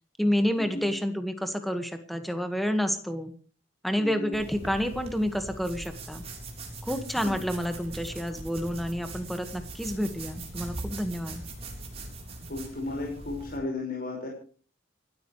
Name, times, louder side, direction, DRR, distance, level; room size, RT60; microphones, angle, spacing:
voice 1, 0.2-3.3 3.8-6.2 6.8-11.4, equal, ahead, 7 dB, 1.7 m, -29 dB
voice 2, 4.0-4.3 7.2-7.4 12.5-14.3, left 2 dB, 50° left, -1 dB, 5.5 m, -34 dB
sound 1, 4.3-13.6, right 2 dB, 30° right, 3.9 m, -41 dB
28.5 x 13.0 x 3.3 m, 0.41 s
head